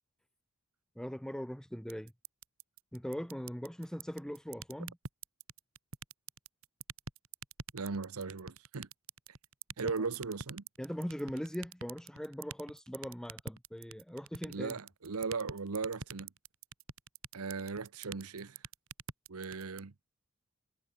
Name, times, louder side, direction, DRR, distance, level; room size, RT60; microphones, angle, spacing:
voice 1, 1.0-2.1 2.9-5.0 9.8-10.1 10.8-14.8, equal, 5° left, 0.6 m, -40 dB
sound 1, 1.9-19.8, right 5 dB, 70° right, 3.5 m, -43 dB
voice 2, 7.7-8.9 9.8-10.6 14.5-16.3 17.3-18.6 19.3-19.9, right 4 dB, 90° right, 0.9 m, -38 dB
head